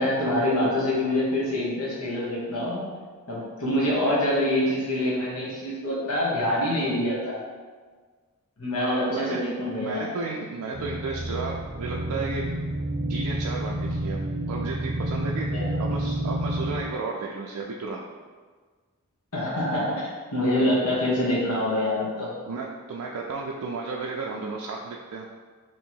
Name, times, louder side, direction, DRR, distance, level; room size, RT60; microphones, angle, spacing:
voice 1, 0.0-2.9 3.3-7.4 8.6-10.1 15.5-15.9 19.3-22.3, left 1 dB, 70° left, -6 dB, 1.0 m, -25 dB
voice 2, 9.1-9.4 9.8-12.5 13.1-14.2 14.5-15.5 15.8-18.0 22.5-25.3, right 4 dB, 85° right, -2 dB, 0.4 m, -33 dB
sound 1, 10.7-16.8, right 1 dB, 35° right, 0.6 m, -29 dB
3.0 x 2.7 x 4.5 m, 1.5 s
head